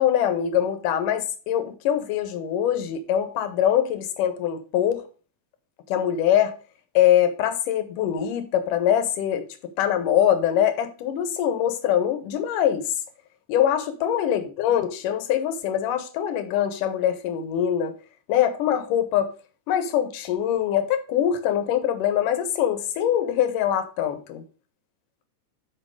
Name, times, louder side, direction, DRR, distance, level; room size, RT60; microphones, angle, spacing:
voice 1, 0.0-5.0 5.9-6.5 7.0-12.8 13.5-17.9 18.3-19.3 19.7-24.4, left 10 dB, 85° left, 2.5 m, -23 dB
7.7 x 5.9 x 4.7 m
omnidirectional pair, 3.8 m